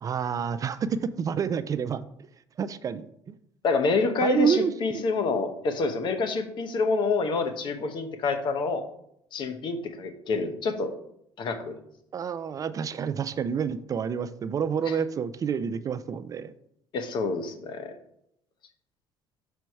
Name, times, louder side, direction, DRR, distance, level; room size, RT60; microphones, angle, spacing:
voice 1, 0.0-2.0 2.6-3.4 4.2-5.0 12.1-16.5, right 7 dB, 35° right, 12 dB, 0.4 m, -28 dB
voice 2, 3.6-8.8 9.3-10.9 11.4-11.8 14.9-15.0 16.9-17.9, left 4 dB, 55° left, 8 dB, 0.9 m, -27 dB
6.1 x 4.5 x 4.6 m, 0.74 s
cardioid pair, 105°, 10 cm